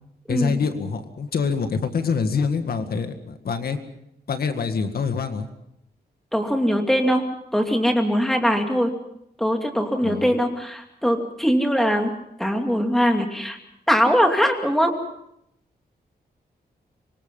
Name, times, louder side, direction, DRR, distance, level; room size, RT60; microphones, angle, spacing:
voice 1, 0.3-3.8 4.3-5.5 10.0-10.3, left 5 dB, 65° left, 7 dB, 1.9 m, -25 dB
voice 2, 6.3-7.2 7.5-8.9 9.4-12.1 12.4-13.6 13.9-14.9, equal, ahead, 3 dB, 2.7 m, -21 dB
26.0 x 24.0 x 5.6 m, 0.76 s
wide cardioid pair, 160°, 17 cm